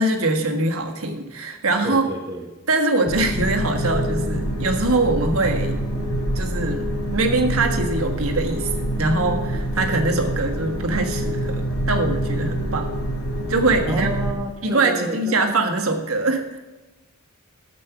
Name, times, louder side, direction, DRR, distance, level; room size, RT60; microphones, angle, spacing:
voice 1, 0.0-2.1 2.7-5.8 6.3-6.9 7.1-12.9 13.5-14.1 14.6-16.7, right 2 dB, 70° right, 4 dB, 1.5 m, -22 dB
voice 2, 1.8-2.5 13.9-15.3, right 1 dB, 20° right, 1 dB, 1.1 m, -30 dB
sound 1, 3.1-14.3, right 1 dB, 85° left, 4.3 m, -26 dB
12.5 x 7.5 x 5.9 m, 1.1 s
head